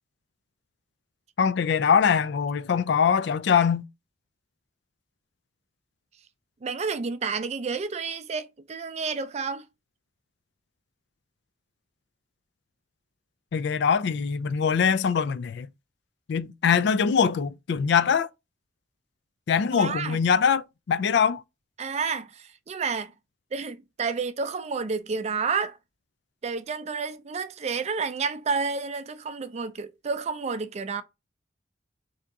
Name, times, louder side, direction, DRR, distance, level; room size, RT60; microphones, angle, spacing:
voice 1, 1.4-3.8 13.5-15.7 16.3-18.3 19.5-21.4, left 6 dB, 65° left, 0.4 m, -23 dB
voice 2, 6.6-9.7 19.7-20.2 21.8-23.1 23.5-25.8 26.4-31.0, right 5 dB, 35° right, 0.4 m, -30 dB
3.4 x 2.8 x 3.6 m
head